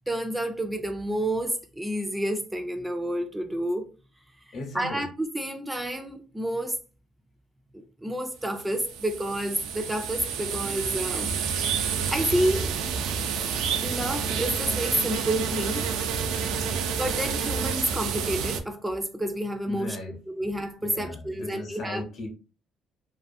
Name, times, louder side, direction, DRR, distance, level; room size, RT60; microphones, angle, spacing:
voice 1, 0.1-3.9 4.5-6.8 7.7-11.3 11.9-12.7 13.8-15.9 17.0-20.0 20.3-22.0, right 1 dB, 10° right, 0.3 m, -29 dB
voice 2, 4.5-5.0 16.6-16.8 19.7-20.5 20.8-22.3, left 2 dB, 55° left, 0.8 m, -38 dB
sound 1, 8.5-18.6, right 6 dB, 85° right, 0.4 m, -29 dB
2.4 x 2.4 x 2.5 m
cardioid pair, 110°, 0 cm